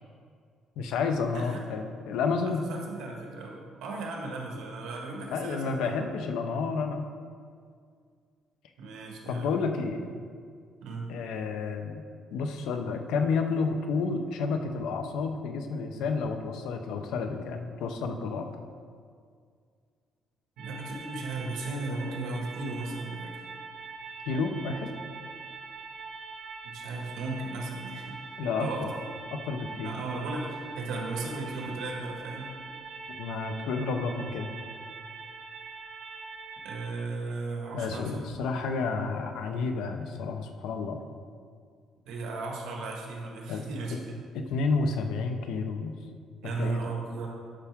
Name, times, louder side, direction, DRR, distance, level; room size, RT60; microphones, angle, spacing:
voice 1, 0.8-2.7 5.3-7.1 9.3-10.0 11.1-12.0 12.3-18.5 24.3-24.9 28.4-28.7 29.3-30.0 33.2-34.5 37.7-41.0 43.5-43.6 44.3-46.0 46.6-46.8, left 4 dB, 85° left, 5 dB, 0.8 m, -30 dB
voice 2, 1.3-1.7 2.4-6.0 8.8-9.6 10.8-11.1 20.6-23.4 26.6-28.9 29.8-32.6 36.6-38.3 42.1-44.2 46.4-47.3, right 3 dB, 85° right, 0 dB, 1.7 m, -36 dB
sound 1, 20.6-36.9, right 4 dB, 60° right, 1.0 m, -43 dB
11.5 x 5.8 x 3.6 m, 2.1 s
cardioid pair, 170°, 0 cm